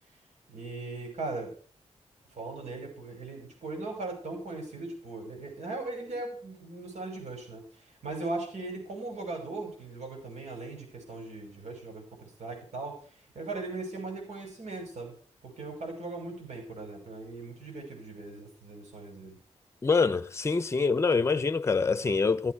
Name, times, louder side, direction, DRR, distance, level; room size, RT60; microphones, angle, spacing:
voice 1, 0.5-1.5 2.3-15.1 15.4-19.4, right 3 dB, 80° right, 5.9 m, -39 dB
voice 2, 19.8-22.5, left 4 dB, 25° left, 0.7 m, -25 dB
15.5 x 14.5 x 4.6 m
wide cardioid pair, 175°, 12 cm